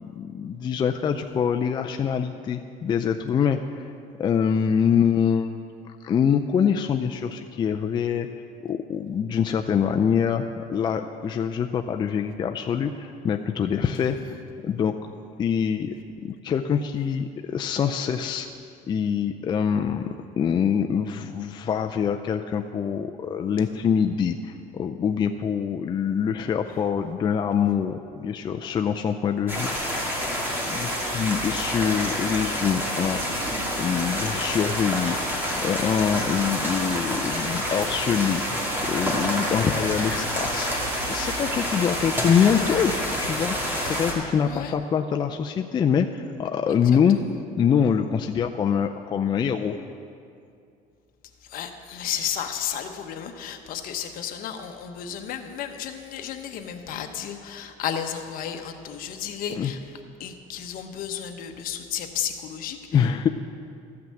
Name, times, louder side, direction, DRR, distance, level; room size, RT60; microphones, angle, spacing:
voice 1, 0.0-3.9 4.2-5.5 6.0-8.3 8.6-14.4 14.6-14.9 15.4-15.9 16.2-18.5 18.9-20.1 20.4-33.2 33.8-35.2 35.6-38.4 38.9-40.7 41.1-47.2 47.6-49.8 59.6-59.7 62.9-63.3, left 7 dB, 25° left, 5 dB, 0.4 m, -25 dB
sound 1, 29.5-44.1, equal, 10° right, 2.4 m, -28 dB
voice 2, 44.4-44.8 47.1-47.2 51.4-63.1, left 9 dB, 55° left, 6 dB, 1.0 m, -33 dB
14.0 x 5.9 x 7.7 m, 2.5 s
cardioid pair, 135°, 17 cm